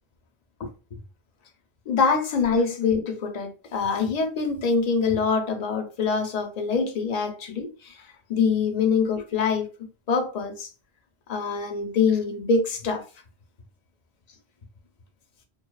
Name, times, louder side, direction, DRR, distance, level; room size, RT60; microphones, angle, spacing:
voice 1, 1.9-7.9 8.3-9.7 10.1-10.7 11.3-13.0, left 5 dB, 50° left, 0.5 m, -24 dB
2.5 x 2.2 x 2.2 m
omnidirectional pair, 1.1 m